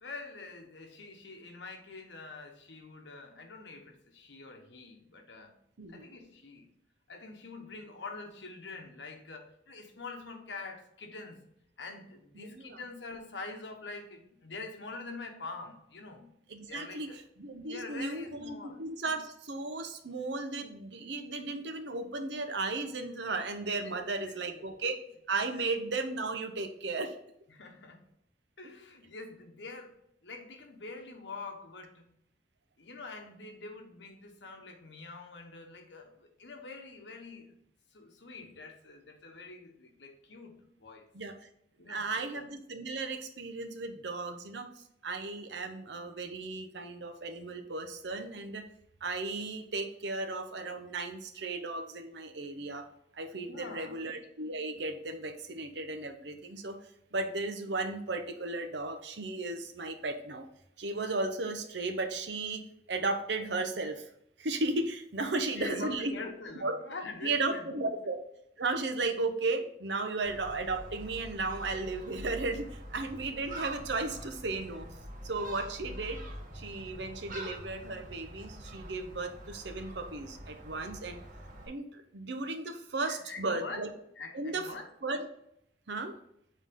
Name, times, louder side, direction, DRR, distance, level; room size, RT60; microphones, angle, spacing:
voice 1, 0.0-5.6 5.9-6.7 7.1-11.4 11.8-16.3 16.6-17.2 17.7-18.8 23.7-24.7 25.5-25.6 27.5-28.1 28.6-30.0 30.2-32.1 32.8-37.6 37.9-41.1 41.8-42.4 53.5-54.1 65.3-67.9 83.1-83.8 84.2-84.9, left 3 dB, 90° left, 4 dB, 1.1 m, -45 dB
voice 2, 12.4-12.8 16.5-17.1 17.4-25.0 25.3-27.2 41.1-41.3 41.9-48.6 49.0-52.8 53.1-56.8 57.1-60.5 60.8-64.1 64.4-66.1 66.6-66.7 67.2-68.2 68.6-74.9 75.2-76.2 76.5-81.2 81.7-83.9 84.3-84.7 85.0-85.3 85.9-86.2, right 3 dB, 70° right, 6 dB, 0.8 m, -35 dB
Gull seagull, 70.2-81.7, right 1 dB, 50° right, 1.6 m, -45 dB
7.3 x 3.9 x 3.6 m, 0.75 s
head